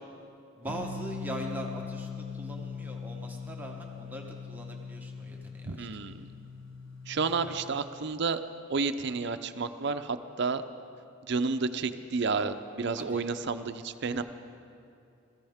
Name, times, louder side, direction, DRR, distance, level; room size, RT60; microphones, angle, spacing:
voice 1, 0.6-6.1 7.4-7.6 13.0-13.3, right 1 dB, 10° right, 0 dB, 1.0 m, -42 dB
sound 1, 0.7-7.5, left 5 dB, 85° left, 1.5 m, -40 dB
voice 2, 5.7-6.1 7.1-8.4 8.7-10.6 11.2-14.2, right 4 dB, 60° right, 10 dB, 0.6 m, -31 dB
21.0 x 14.5 x 3.6 m, 2.6 s
head